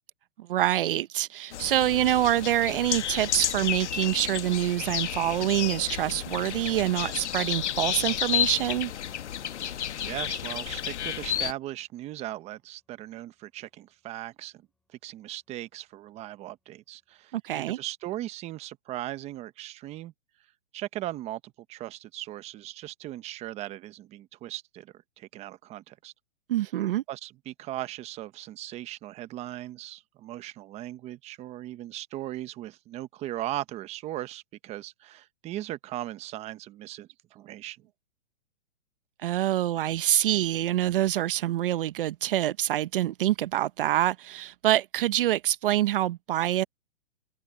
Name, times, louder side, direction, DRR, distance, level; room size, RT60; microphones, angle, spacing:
voice 1, 0.4-8.9 17.3-17.8 26.5-27.0 39.2-46.6, right 13 dB, 50° right, 0.8 m, -26 dB
sound 1, 1.5-11.5, left 10 dB, 75° left, 1.4 m, -31 dB
voice 2, 9.7-14.6 15.0-20.1 20.7-26.1 27.1-37.8, right 14 dB, 20° right, 1.1 m, -38 dB
sound 2, 11.6-15.9 16.2-16.3, left 1 dB, ahead, 4.7 m, -67 dB
hypercardioid pair, 150°, 35 cm